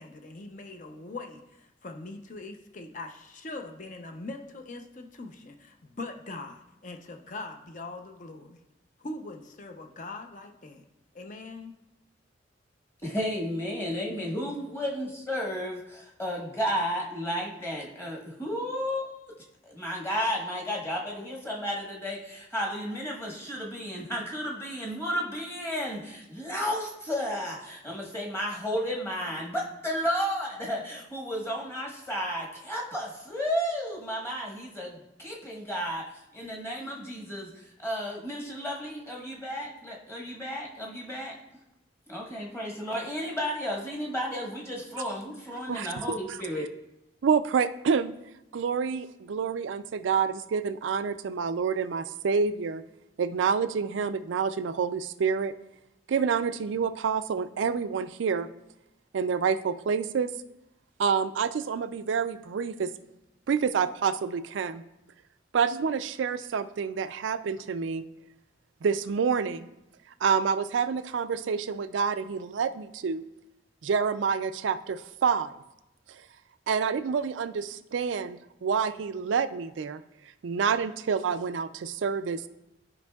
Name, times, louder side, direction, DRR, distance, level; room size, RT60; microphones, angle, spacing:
voice 1, 0.0-8.6 9.0-10.8 11.1-11.8, left 2 dB, 45° left, 5 dB, 0.6 m, -41 dB
voice 2, 13.0-19.3 19.6-41.4 42.1-46.7, equal, 15° left, -2 dB, 1.2 m, -33 dB
voice 3, 47.2-48.1 48.5-52.8 53.2-55.5 56.1-58.5 59.1-60.3 61.0-62.9 63.5-64.8 65.5-68.0 68.8-69.7 70.2-73.2 73.8-75.5 76.7-80.0 80.4-82.4, right 6 dB, 80° right, 12 dB, 0.4 m, -28 dB
13.0 x 5.2 x 2.3 m, 0.91 s
head